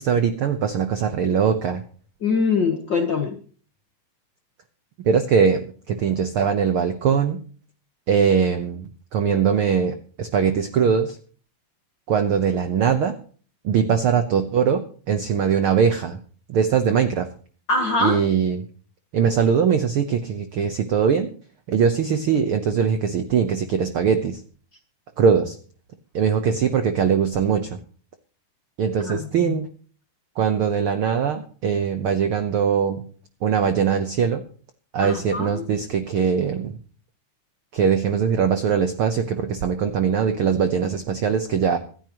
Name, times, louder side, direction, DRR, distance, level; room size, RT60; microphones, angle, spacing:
voice 1, 0.0-1.8 5.0-7.4 8.1-11.2 12.1-13.2 13.6-16.2 16.5-17.3 18.0-18.7 19.1-21.3 21.7-24.4 25.2-25.6 26.1-27.8 28.8-29.7 30.4-33.0 33.4-34.4 34.9-36.8 37.7-41.8, right 7 dB, 70° right, 8 dB, 1.2 m, -21 dB
voice 2, 2.2-3.4 17.7-18.2 29.0-29.6 35.0-35.6, left 4 dB, 55° left, 4 dB, 1.3 m, -23 dB
25.5 x 9.8 x 3.0 m, 0.42 s
omnidirectional pair, 3.7 m